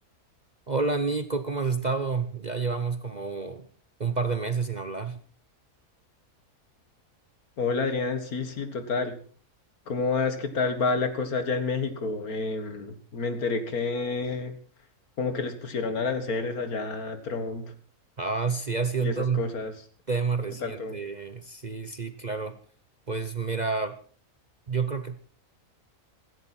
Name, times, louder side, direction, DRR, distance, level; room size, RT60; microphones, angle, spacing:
voice 1, 0.7-3.7 4.0-5.2 18.2-19.4 20.1-22.6 23.1-24.0 24.7-25.2, right 4 dB, 35° right, 10 dB, 0.9 m, -29 dB
voice 2, 7.6-9.2 9.9-14.6 15.2-17.7 19.0-19.7 20.6-21.0, left 4 dB, 70° left, 9 dB, 2.2 m, -29 dB
16.5 x 14.5 x 4.4 m, 0.43 s
omnidirectional pair, 1.6 m